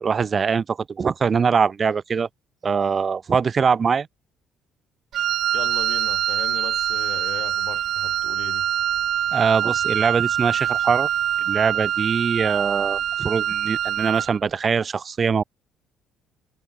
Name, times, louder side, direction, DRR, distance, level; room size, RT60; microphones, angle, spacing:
voice 1, 0.0-2.3 2.6-4.1 9.3-11.1 11.5-15.4, right 6 dB, 30° right, 2.3 m, -22 dB
Wind instrument woodwind instrument, 5.1-14.4, right 10 dB, 55° right, 0.6 m, -24 dB
voice 2, 5.5-8.6, left 12 dB, 60° left, 3.4 m, -37 dB
cardioid pair, 145°, 0 cm